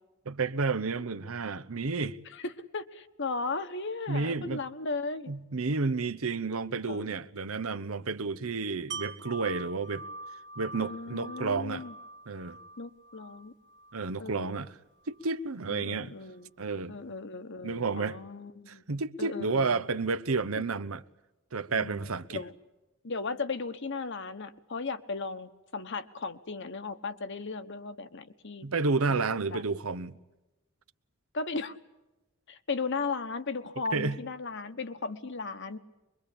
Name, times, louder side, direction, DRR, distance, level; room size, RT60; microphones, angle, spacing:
voice 1, 0.3-2.2 4.1-4.6 5.3-10.0 10.6-11.8 12.3-12.6 13.9-14.7 15.1-16.1 16.6-17.0 17.6-18.2 18.7-21.0 21.5-22.4 28.6-30.2 33.9-34.2, right 4 dB, 85° right, 0.9 m, -31 dB
voice 2, 2.3-5.3 6.8-7.0 10.7-11.9 12.8-13.5 14.2-14.6 15.7-16.5 16.9-18.8 19.2-19.8 21.7-22.5 23.0-28.6 29.1-29.2 29.5-29.6 31.3-31.8 32.5-35.8, left 4 dB, 60° left, 1.3 m, -36 dB
Wind chime, 8.9-14.7 15.1-15.2, right 3 dB, 55° right, 1.4 m, -44 dB
24.5 x 22.5 x 8.6 m
head